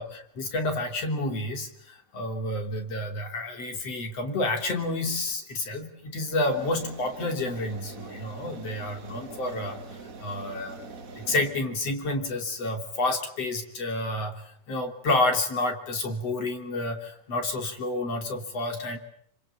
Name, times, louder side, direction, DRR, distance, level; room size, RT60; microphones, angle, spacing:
voice 1, 0.0-9.8 10.2-10.8 11.2-14.4 14.7-19.0, left 2 dB, 55° left, 4 dB, 4.2 m, -29 dB
sound 1, 6.5-11.5, right 4 dB, 35° right, 1.7 m, -43 dB
27.5 x 26.0 x 7.2 m, 0.66 s
omnidirectional pair, 3.3 m